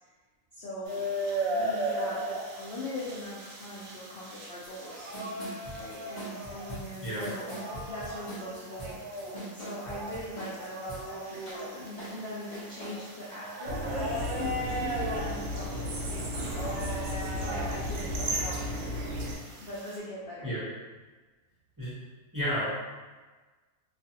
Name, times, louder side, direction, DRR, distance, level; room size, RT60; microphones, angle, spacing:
voice 1, 0.5-1.1 1.5-5.1 5.8-7.6 7.9-19.0 19.3-20.6, left 1 dB, 75° left, -7 dB, 0.5 m, -41 dB
sound 1, 0.8-20.0, right 1 dB, 70° right, 0.9 m, -37 dB
sound 2, 4.6-4.7 5.0-11.0 11.3-13.0, equal, 35° left, 0.7 m, -42 dB
sound 3, 13.7-19.4, equal, 85° right, 0.5 m, -34 dB
voice 2, 22.3-22.6, equal, 20° right, -12 dB, 0.5 m, -31 dB
2.4 x 2.4 x 2.7 m, 1.3 s
omnidirectional pair, 1.6 m